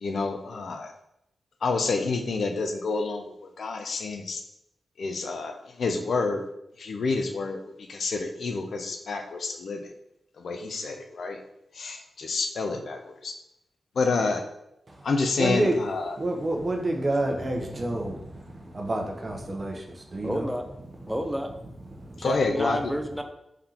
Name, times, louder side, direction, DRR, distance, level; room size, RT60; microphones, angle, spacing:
voice 1, 0.0-0.9 1.6-4.4 5.0-6.4 6.8-7.6 7.9-9.9 10.4-11.4 11.8-13.3 14.0-14.4 15.0-16.2 22.2-22.8, left 3 dB, 75° left, 5 dB, 0.4 m, -28 dB
voice 2, 15.4-15.7 16.2-20.4 21.9-22.3, right 1 dB, 40° right, 2 dB, 0.8 m, -29 dB
voice 3, 20.2-20.6 21.1-21.5 22.2-23.2, equal, ahead, 6 dB, 0.6 m, -30 dB
3.7 x 3.5 x 2.9 m, 0.82 s
cardioid pair, 45°, 0 cm